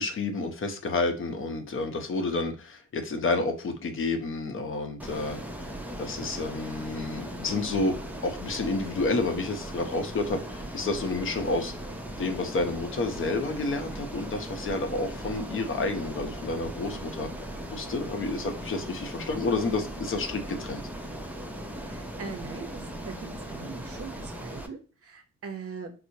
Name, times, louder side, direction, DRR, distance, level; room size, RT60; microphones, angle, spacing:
voice 1, 0.0-5.4 5.6-5.7 6.0-7.9 8.2-11.7 12.2-17.3 17.7-20.8, left 3 dB, 45° left, 0.7 m, -30 dB
Ocean, 5.0-24.7, right 1 dB, 5° right, 0.5 m, -38 dB
voice 2, 21.8-25.9, right 5 dB, 50° right, 0.8 m, -41 dB
4.4 x 2.0 x 2.7 m
cardioid pair, 90°, 30 cm